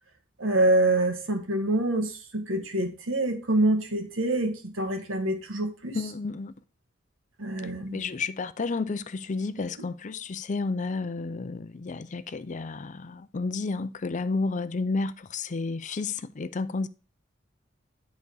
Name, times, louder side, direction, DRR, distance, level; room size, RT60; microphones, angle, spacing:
voice 1, 0.4-6.1 7.4-8.0 9.6-9.7, right 1 dB, 90° right, 1.7 m, -26 dB
voice 2, 5.9-6.5 7.9-16.9, left 3 dB, 40° left, 0.5 m, -31 dB
11.0 x 4.0 x 4.8 m
head